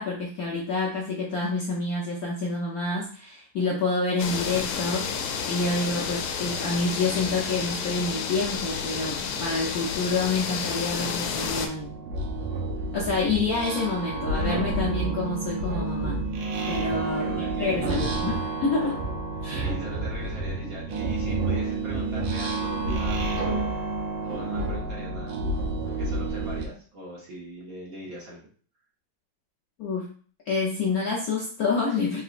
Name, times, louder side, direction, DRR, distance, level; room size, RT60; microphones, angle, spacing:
voice 1, 0.0-5.2 5.4-12.0 12.9-16.2 16.7-19.0 19.4-19.7 29.8-30.1 30.5-32.2, left 3 dB, 65° left, -3 dB, 0.9 m, -28 dB
sound 1, 4.2-11.7, left 6 dB, 90° left, 1.5 m, -30 dB
sound 2, 9.6-9.7 10.1-26.7, right 2 dB, 80° right, 1.6 m, -29 dB
voice 2, 17.1-18.0 19.5-23.7 24.2-25.4 25.8-28.4, right 1 dB, 50° right, -4 dB, 1.3 m, -41 dB
3.9 x 3.7 x 2.4 m, 0.43 s
omnidirectional pair, 2.3 m